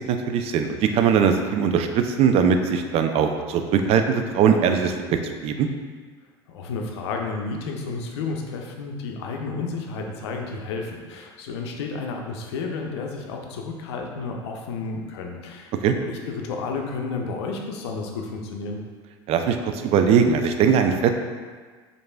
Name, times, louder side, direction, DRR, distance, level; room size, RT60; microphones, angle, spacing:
voice 1, 0.0-5.0 5.2-5.7 15.8-15.9 19.3-21.1, right 7 dB, 45° right, 6 dB, 0.4 m, -20 dB
voice 2, 6.5-15.7 16.0-18.8, left 4 dB, 75° left, 2 dB, 0.5 m, -31 dB
4.7 x 2.6 x 2.2 m, 1.5 s
hypercardioid pair, 80°, 14 cm